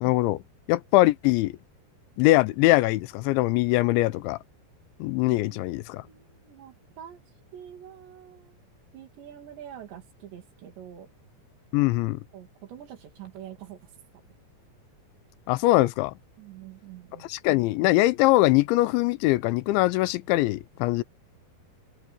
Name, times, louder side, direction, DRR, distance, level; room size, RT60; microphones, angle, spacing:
voice 1, 0.0-0.4 0.7-1.6 2.2-4.4 5.0-6.0 11.7-12.2 15.5-16.1 17.3-21.0, left 19 dB, 85° left, 3.0 m, -22 dB
voice 2, 5.3-5.6 6.0-7.2 7.5-8.6 8.9-11.1 12.3-13.9 16.4-17.3, right 10 dB, 70° right, 4.9 m, -45 dB
omnidirectional pair, 5.2 m